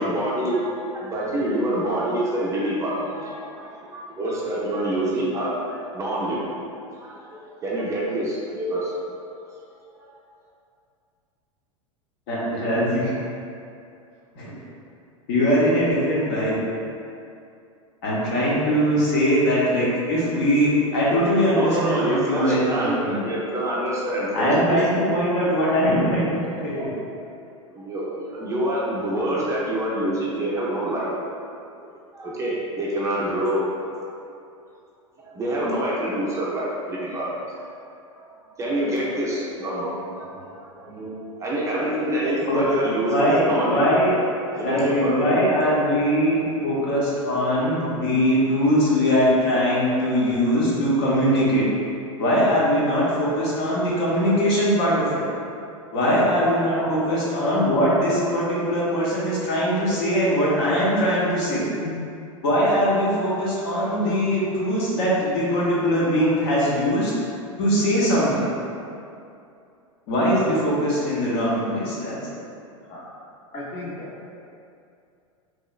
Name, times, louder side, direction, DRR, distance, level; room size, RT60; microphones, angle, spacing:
voice 1, 0.0-6.5 7.0-8.9 10.0-10.1 21.5-24.8 25.6-25.8 26.7-26.9 27.7-31.1 32.1-33.7 35.2-37.4 38.2-43.8 44.5-45.2 46.4-46.6, right 1 dB, 15° right, -6 dB, 0.4 m, -26 dB
voice 2, 12.3-13.1 14.3-14.5 15.3-16.6 18.0-23.2 24.3-26.3 26.6-26.9 42.5-44.2 44.5-51.6 52.2-55.2 55.9-61.6 62.4-67.1 67.6-68.5 70.1-72.4, equal, 50° left, -7 dB, 0.9 m, -21 dB
voice 3, 56.8-57.2 61.8-62.0 72.9-73.0 73.5-74.1, left 1 dB, 30° left, -8 dB, 0.5 m, -34 dB
3.1 x 2.8 x 2.3 m, 2.6 s
figure-of-eight pair, 90°, 17 cm